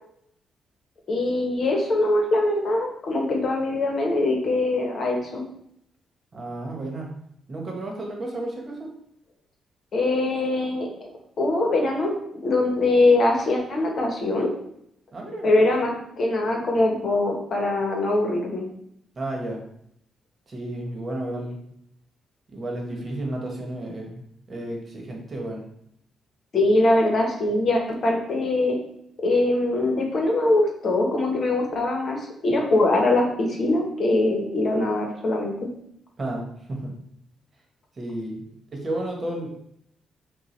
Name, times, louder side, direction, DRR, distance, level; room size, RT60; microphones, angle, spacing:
voice 1, 1.1-5.4 9.9-10.9 11.4-12.1 12.4-14.5 15.4-18.7 26.5-28.8 29.2-35.5, left 2 dB, 55° left, 1 dB, 1.0 m, -22 dB
voice 2, 6.3-7.1 7.5-8.9 15.1-15.5 19.1-19.6 20.5-21.6 22.5-25.6 36.2-36.9 38.0-38.4 38.7-39.5, right 1 dB, 40° right, 1 dB, 1.1 m, -32 dB
5.4 x 2.3 x 3.1 m, 0.72 s
cardioid pair, 75°, 0 cm